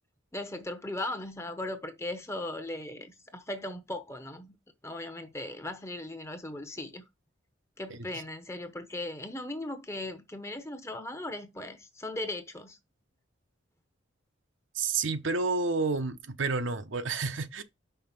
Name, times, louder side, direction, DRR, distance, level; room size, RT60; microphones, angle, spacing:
voice 1, 0.3-4.5 4.8-7.0 7.8-12.8, left 1 dB, 15° left, 0.9 m, -38 dB
voice 2, 14.7-17.6, right 4 dB, 75° right, 0.9 m, -30 dB
5.7 x 4.1 x 5.8 m
head